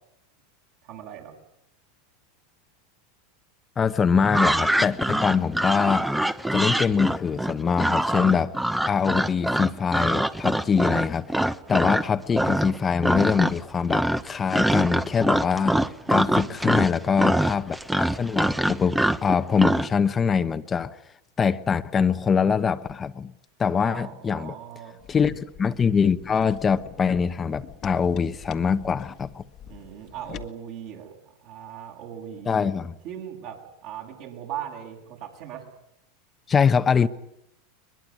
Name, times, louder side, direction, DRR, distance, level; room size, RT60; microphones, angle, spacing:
voice 1, 0.8-1.4 16.0-16.6 23.8-25.0 29.6-32.7 33.0-35.7, right 9 dB, 60° right, 1 dB, 7.8 m, -39 dB
voice 2, 3.8-6.1 6.5-8.5 8.9-15.8 16.1-21.0 21.4-23.3 23.6-24.5 25.1-29.4 32.5-32.9 36.5-37.1, left 6 dB, 25° left, 10 dB, 1.0 m, -23 dB
sound 1, 4.2-12.1 12.3-12.8 13.0-13.6 13.9-19.9, right 1 dB, 5° right, 1.0 m, -24 dB
sound 2, 25.0-30.5, left 10 dB, 40° left, 1.5 m, -44 dB
22.0 x 22.0 x 9.6 m, 0.79 s
hypercardioid pair, 100°, 0 cm